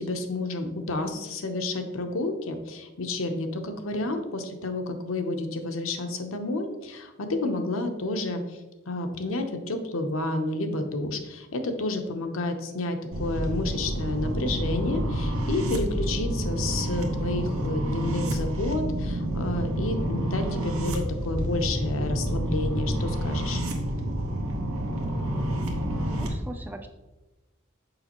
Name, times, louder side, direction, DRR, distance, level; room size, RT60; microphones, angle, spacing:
voice 1, 0.0-23.6, left 2 dB, 75° left, 5 dB, 0.7 m, -30 dB
sound 1, 13.1-26.3, equal, 90° right, 1.0 m, -29 dB
voice 2, 26.1-26.9, right 1 dB, 10° right, 6 dB, 0.3 m, -39 dB
6.6 x 5.1 x 3.0 m, 1.1 s
head